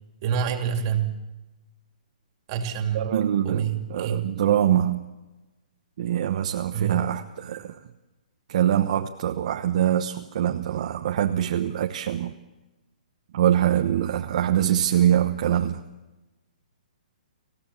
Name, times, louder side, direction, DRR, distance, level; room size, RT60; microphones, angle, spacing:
voice 1, 0.2-1.2 2.5-3.1 3.4-4.3 6.7-7.1, right 8 dB, 35° right, 4 dB, 2.9 m, -27 dB
voice 2, 2.9-5.0 6.0-7.7 8.5-12.3 13.3-15.8, right 11 dB, 50° right, 5 dB, 1.1 m, -24 dB
26.5 x 16.0 x 7.2 m, 1.1 s
hypercardioid pair, 155°, 5 cm